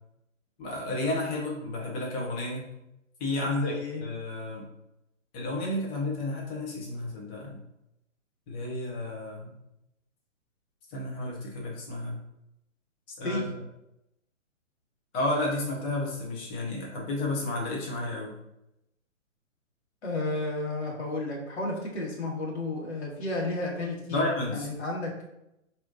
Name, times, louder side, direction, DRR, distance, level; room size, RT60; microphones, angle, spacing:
voice 1, 0.6-2.7 3.2-3.8 4.0-4.6 5.3-7.6 8.5-9.5 10.9-12.2 13.2-13.6 15.1-18.4 24.1-24.7, left 2 dB, 15° left, -2 dB, 0.7 m, -31 dB
voice 2, 3.5-4.0 13.2-13.4 20.0-24.2 24.5-25.1, left 2 dB, 55° left, -2 dB, 1.6 m, -32 dB
4.1 x 2.7 x 3.9 m, 0.86 s
figure-of-eight pair, 130°, 39 cm